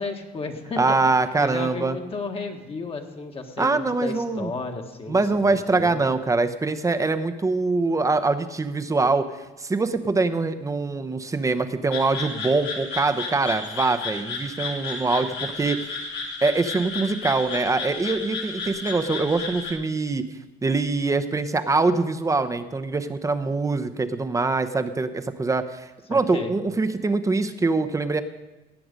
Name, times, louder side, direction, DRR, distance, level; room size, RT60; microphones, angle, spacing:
voice 1, 0.0-0.8 1.4-6.0 26.1-26.5, left 4 dB, 35° left, 3 dB, 1.5 m, -33 dB
voice 2, 0.8-2.0 3.6-4.5 5.1-9.3 9.6-15.9 16.4-20.2 20.6-28.2, right 3 dB, 20° right, 9 dB, 0.8 m, -23 dB
sound 1, 11.9-19.7, left 4 dB, 75° left, 2.4 m, -33 dB
17.5 x 7.7 x 5.2 m, 1.1 s
cardioid pair, 110°, 17 cm